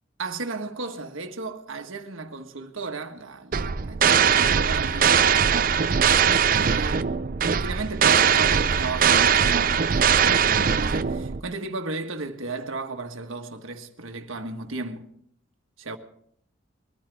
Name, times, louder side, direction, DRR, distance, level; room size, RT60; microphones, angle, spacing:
voice 1, 0.2-5.3 6.5-7.1 7.4-15.1 15.8-16.0, right 3 dB, 85° right, 1.5 m, -34 dB
sound 1, 3.5-11.4, right 7 dB, 45° right, 0.5 m, -21 dB
22.0 x 14.0 x 3.5 m
head